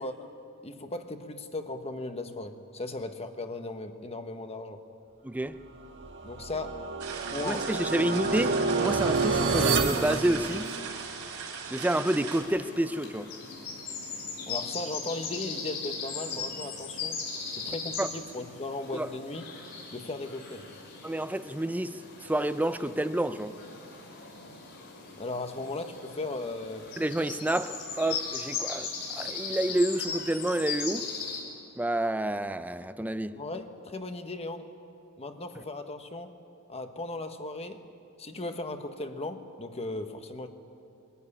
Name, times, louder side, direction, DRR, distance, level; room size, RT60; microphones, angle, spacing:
voice 1, 0.0-4.8 6.2-6.9 7.3-7.7 14.5-17.2 17.5-19.4 19.9-20.7 25.2-26.9 33.3-34.7 35.2-36.3 36.7-37.8 38.2-40.5, left 2 dB, 30° left, 7 dB, 1.1 m, -37 dB
voice 2, 5.2-5.6 7.4-10.7 11.7-13.3 18.0-18.1 18.9-19.1 21.0-23.5 27.0-31.1 31.8-33.4, right 1 dB, 5° right, 12 dB, 0.5 m, -29 dB
sound 1, 6.0-11.2, right 4 dB, 55° right, 1.5 m, -29 dB
sound 2, 7.0-12.4, right 5 dB, 75° right, 4.2 m, -39 dB
sound 3, 12.3-31.4, left 5 dB, 55° left, 6.1 m, -38 dB
22.0 x 14.0 x 9.8 m, 2.7 s
head